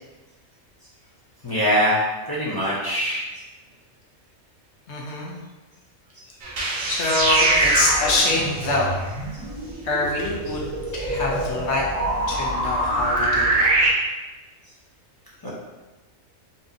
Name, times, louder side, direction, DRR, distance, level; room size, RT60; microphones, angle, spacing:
voice 1, 1.4-2.0 2.3-3.3 15.4-15.5, equal, 30° left, -8 dB, 0.5 m, -22 dB
voice 2, 4.9-5.4 6.9-9.0 9.8-10.6 10.9-11.8 12.3-13.7, left 2 dB, 65° left, -3 dB, 0.9 m, -25 dB
sound 1, 6.4-13.9, right 2 dB, 85° right, 1.2 m, -24 dB
4.1 x 2.6 x 2.5 m, 1.2 s
omnidirectional pair, 1.4 m